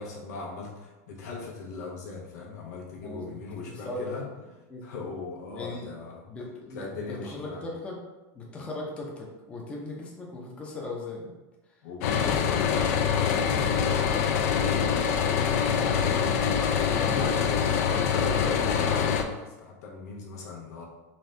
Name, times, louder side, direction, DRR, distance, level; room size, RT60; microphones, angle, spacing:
voice 1, 0.0-4.2 4.8-6.2 6.7-7.6 11.8-15.2 16.8-20.9, left 4 dB, 90° left, -2 dB, 1.1 m, -39 dB
voice 2, 3.0-3.4 3.7-4.2 4.7-4.9 5.5-5.9 6.3-8.0 8.3-11.3 11.7-11.8 13.3-13.7 15.7-16.1 16.8-17.4, left 2 dB, 15° left, -2 dB, 0.6 m, -38 dB
sound 1, 12.0-19.2, left 7 dB, 65° left, 0.4 m, -25 dB
4.1 x 2.7 x 3.2 m, 1.1 s
supercardioid pair, 160°, 9 cm